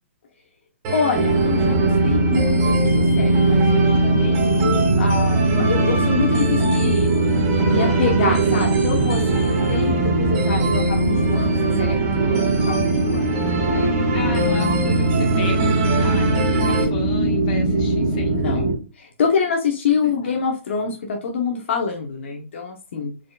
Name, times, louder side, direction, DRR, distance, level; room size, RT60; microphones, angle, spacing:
sound 1, 0.8-16.8, right 4 dB, 30° right, 1.6 m, -25 dB
voice 1, 0.9-7.1 7.6-13.4 13.7-13.9 15.9-16.4 18.3-18.7 18.9-23.1, left 5 dB, 60° left, 2 dB, 1.0 m, -26 dB
sound 2, 1.1-18.7, right 1 dB, 10° right, 1.8 m, -20 dB
voice 2, 14.1-18.6, left 5 dB, 35° left, 2 dB, 1.6 m, -34 dB
4.8 x 3.9 x 2.4 m, 0.33 s
hypercardioid pair, 160°, 7 cm